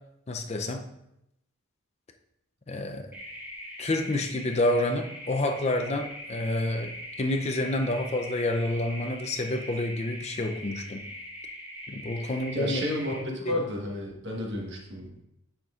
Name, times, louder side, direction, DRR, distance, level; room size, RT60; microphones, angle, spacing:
voice 1, 0.3-0.8 2.7-3.1 3.8-11.0 11.9-12.8 13.5-13.6, left 2 dB, 30° left, 5 dB, 0.5 m, -29 dB
sound 1, 3.1-13.2, equal, 10° right, 1.2 m, -42 dB
voice 2, 12.2-15.2, left 1 dB, 55° right, -1 dB, 1.4 m, -32 dB
9.3 x 5.9 x 2.4 m, 0.84 s
head